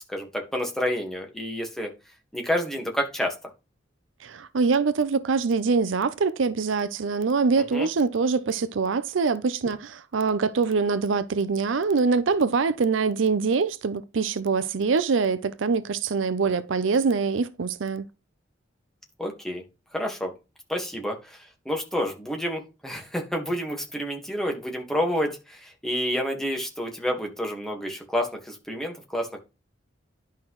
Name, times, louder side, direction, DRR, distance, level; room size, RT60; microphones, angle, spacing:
voice 1, 0.1-1.9 2.3-3.3 7.6-7.9 19.2-19.6 19.9-20.3 20.7-29.4, equal, ahead, 1.6 m, -29 dB
voice 2, 4.2-18.1, right 4 dB, 75° right, 0.5 m, -24 dB
10.5 x 5.6 x 3.1 m
head